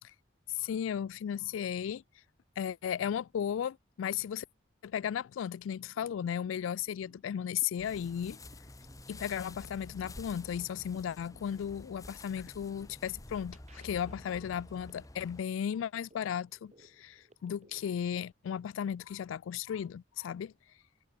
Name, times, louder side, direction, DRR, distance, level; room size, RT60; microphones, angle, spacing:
voice 1, 0.5-2.0 2.6-4.5 4.8-8.4 9.1-20.5, left 8 dB, 85° left, 0.3 m, -35 dB
sound 1, 5.8-18.2, right 1 dB, 35° right, 2.7 m, -64 dB
sound 2, 7.8-15.4, left 1 dB, 15° left, 1.3 m, -50 dB
head